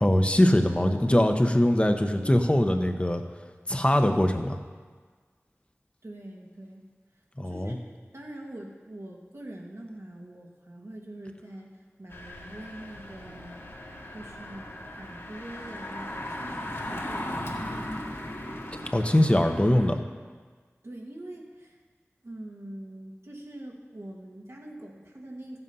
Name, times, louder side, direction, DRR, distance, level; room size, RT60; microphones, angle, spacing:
voice 1, 0.0-3.2 3.7-4.6 7.4-7.8 18.9-20.0, left 1 dB, 25° left, 5 dB, 0.9 m, -22 dB
voice 2, 6.0-6.8 7.4-11.7 12.0-13.7 14.1-18.0 20.8-21.8 22.2-25.6, right 1 dB, 75° right, -1 dB, 1.8 m, -44 dB
Engine, 12.1-19.9, left 1 dB, 60° left, 1.8 m, -38 dB
14.0 x 7.9 x 5.5 m, 1.5 s
wide cardioid pair, 40°, 5 cm